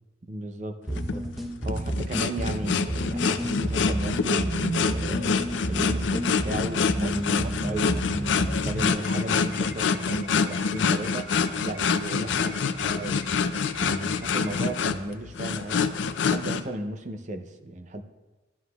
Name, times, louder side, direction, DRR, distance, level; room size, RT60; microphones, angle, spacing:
voice 1, 0.2-13.2 13.6-18.0, right 1 dB, 40° right, 6 dB, 0.6 m, -35 dB
sound 1, 0.9-16.6, left 5 dB, 80° left, 0.4 m, -26 dB
sound 2, 0.9-8.9, right 1 dB, ahead, 0.7 m, -31 dB
sound 3, 9.0-14.8, right 2 dB, 65° right, 0.8 m, -46 dB
13.0 x 9.4 x 2.3 m, 1.2 s
head